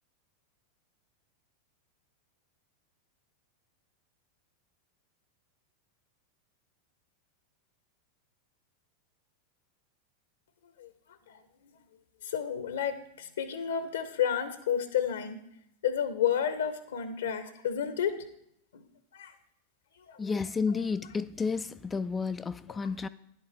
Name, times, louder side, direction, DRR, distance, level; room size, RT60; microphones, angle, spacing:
voice 1, 12.2-15.4 15.8-18.1 18.7-18.8 19.1-19.3 20.0-21.1 22.7-22.9, left 8 dB, 65° left, 0.8 m, -32 dB
voice 2, 20.2-23.1, left 5 dB, 15° left, 0.3 m, -31 dB
10.5 x 8.2 x 3.4 m
figure-of-eight pair, 90°, 0 cm